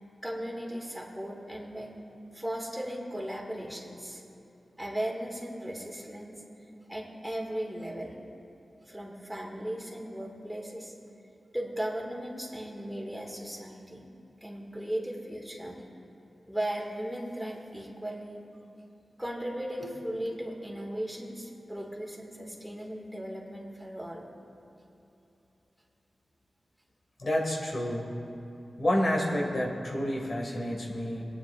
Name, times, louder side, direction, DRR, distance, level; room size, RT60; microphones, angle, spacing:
voice 1, 0.2-1.9 2.3-4.2 4.8-6.4 6.9-8.2 8.9-10.9 11.5-14.0 14.4-15.8 16.5-18.4 19.2-24.3, right 1 dB, 5° right, -1 dB, 2.1 m, -37 dB
voice 2, 27.2-28.1 28.8-31.3, left 1 dB, 55° left, -2 dB, 2.1 m, -29 dB
22.5 x 9.9 x 2.5 m, 2.9 s
cardioid pair, 50°, 0 cm